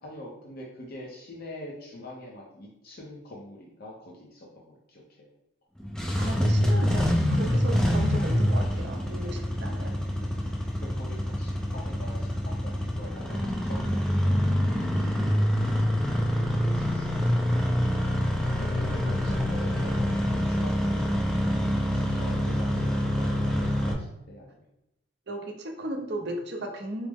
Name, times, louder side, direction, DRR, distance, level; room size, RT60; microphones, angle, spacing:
voice 1, 0.0-5.3 9.2-9.4 10.1-10.3 10.9-15.9 16.6-17.2 18.5-20.0 20.3-24.7, left 1 dB, 50° left, -2 dB, 0.6 m, -45 dB
Engine starting, 5.8-23.9, equal, 5° left, 0.4 m, -26 dB
voice 2, 6.2-9.9 18.4-18.6 19.0-19.1 19.8-19.9 25.3-27.1, right 1 dB, 55° right, 3 dB, 0.6 m, -35 dB
4.7 x 2.1 x 3.4 m, 0.88 s
head